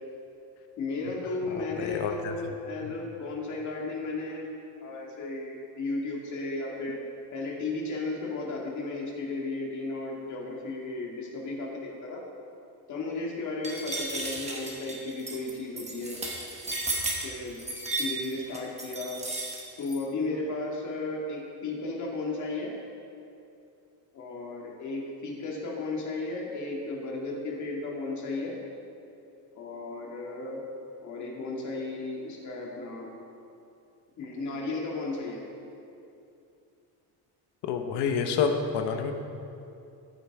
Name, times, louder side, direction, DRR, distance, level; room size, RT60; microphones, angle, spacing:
voice 1, 0.8-4.5 4.8-7.0 7.3-12.2 12.9-16.2 17.2-17.6 18.0-19.2 19.8-22.7 24.1-28.5 29.5-30.6 31.0-33.2 34.2-35.4, left 3 dB, 45° left, -2 dB, 2.0 m, -34 dB
voice 2, 1.8-2.3 2.8-2.9 37.7-39.1, left 6 dB, 70° left, 5 dB, 1.1 m, -28 dB
sound 1, 13.6-20.0, right 2 dB, 15° right, 1.5 m, -34 dB
14.5 x 8.8 x 3.6 m, 2.7 s
cardioid pair, 160°, 42 cm